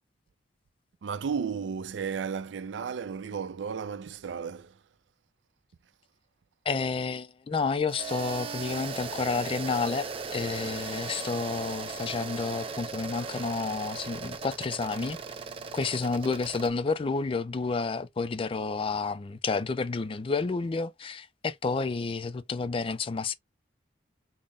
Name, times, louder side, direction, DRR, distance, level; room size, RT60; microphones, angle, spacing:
voice 1, 1.0-4.7, right 6 dB, 90° right, 0.4 m, -34 dB
voice 2, 6.7-15.2 15.7-23.3, left 4 dB, 30° left, 0.3 m, -30 dB
sound 1, 7.9-16.7, right 5 dB, 30° right, 0.5 m, -38 dB
3.9 x 2.0 x 3.4 m
head